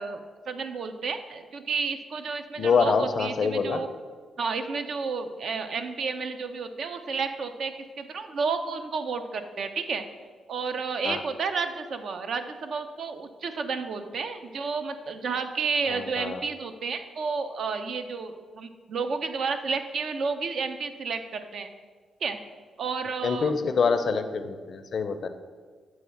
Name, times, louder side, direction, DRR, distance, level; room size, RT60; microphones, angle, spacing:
voice 1, 0.0-3.9 4.4-10.0 10.5-21.7 22.2-22.4 22.8-23.5, right 5 dB, 65° right, 7 dB, 0.5 m, -31 dB
voice 2, 2.6-3.8 11.0-11.2 15.9-16.4 23.2-25.3, left 5 dB, 55° left, 9 dB, 0.5 m, -25 dB
7.1 x 3.1 x 5.7 m, 1.5 s
cardioid pair, 85°, 0 cm